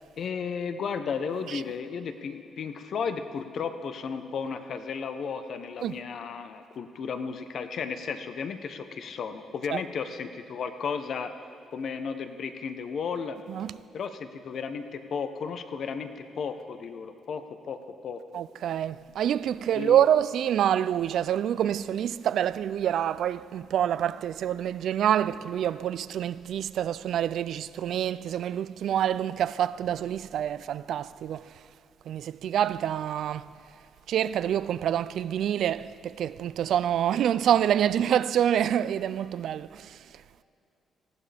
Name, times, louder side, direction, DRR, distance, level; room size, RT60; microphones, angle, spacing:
voice 1, 0.2-11.3 11.7-13.4 13.9-18.2 19.7-20.0, left 6 dB, 60° left, 0.9 m, -34 dB
voice 2, 18.3-31.5 32.1-33.5 34.1-40.0, right 10 dB, 70° right, 0.3 m, -27 dB
18.5 x 15.0 x 3.5 m
cardioid pair, 90°, 0 cm